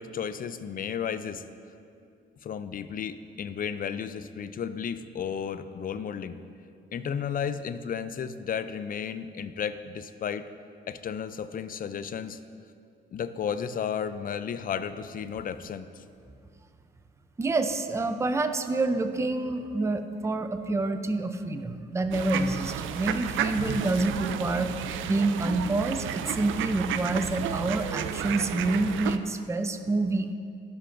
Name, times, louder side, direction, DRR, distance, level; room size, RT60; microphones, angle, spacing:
voice 1, 0.0-1.4 2.4-6.4 6.9-10.5 10.9-12.4 13.1-16.0, left 7 dB, 45° left, 12 dB, 0.5 m, -33 dB
voice 2, 17.4-24.7 25.0-30.3, right 2 dB, 15° right, 9 dB, 0.5 m, -27 dB
sound 1, 22.1-29.2, right 9 dB, 80° right, 0.4 m, -32 dB
16.5 x 5.6 x 2.6 m, 2.4 s
cardioid pair, 90°, 20 cm